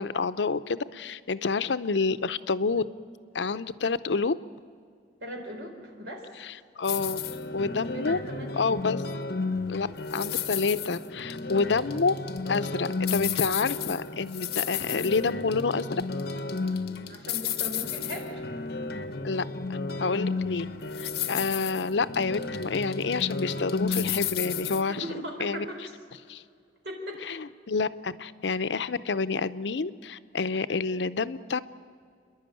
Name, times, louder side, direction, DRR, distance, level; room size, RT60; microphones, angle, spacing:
voice 1, 0.0-2.8 3.3-4.4 6.4-7.2 7.5-8.2 8.6-9.0 9.6-12.2 12.5-16.0 19.2-19.4 20.0-20.7 21.0-25.1 25.4-25.7 26.3-26.4 27.3-31.6, left 4 dB, 90° left, 14 dB, 0.6 m, -28 dB
voice 2, 5.2-6.3 7.9-8.7 17.1-18.4 21.2-21.4 24.8-25.9 26.8-27.2 28.5-28.7, equal, 90° right, 2 dB, 4.3 m, -39 dB
sound 1, 6.8-24.8, left 5 dB, 60° left, 1.0 m, -32 dB
29.5 x 11.0 x 9.2 m, 2.2 s
head